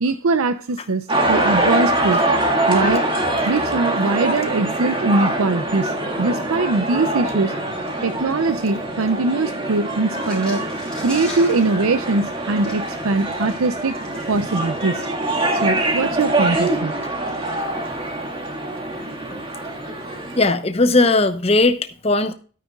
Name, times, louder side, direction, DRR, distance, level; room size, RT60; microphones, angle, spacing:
voice 1, 0.0-2.2 2.7-3.1 3.5-7.5 8.0-10.6 11.0-14.0 14.3-15.0 15.6-16.9, right 3 dB, 80° right, 10 dB, 0.6 m, -21 dB
sound 1, 1.1-20.4, right 1 dB, 25° right, 2.0 m, -24 dB
sound 2, 10.1-16.3 17.0-17.6, left 2 dB, 5° left, 3.6 m, -42 dB
voice 2, 20.4-22.3, left 2 dB, 25° left, 9 dB, 0.8 m, -18 dB
12.5 x 9.2 x 2.3 m, 0.38 s
head